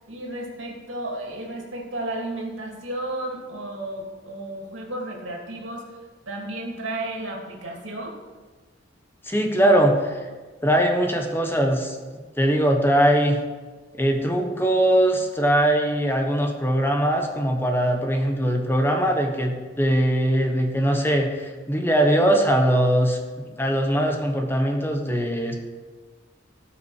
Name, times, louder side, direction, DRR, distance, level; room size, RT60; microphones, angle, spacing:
voice 1, 0.1-5.9 6.3-8.2, right 1 dB, 90° right, -1 dB, 2.6 m, -33 dB
voice 2, 9.2-10.2 10.6-12.0 12.4-13.4 14.0-23.2 23.6-25.5, right 1 dB, 10° left, 3 dB, 1.2 m, -21 dB
17.5 x 6.0 x 4.9 m, 1.4 s
head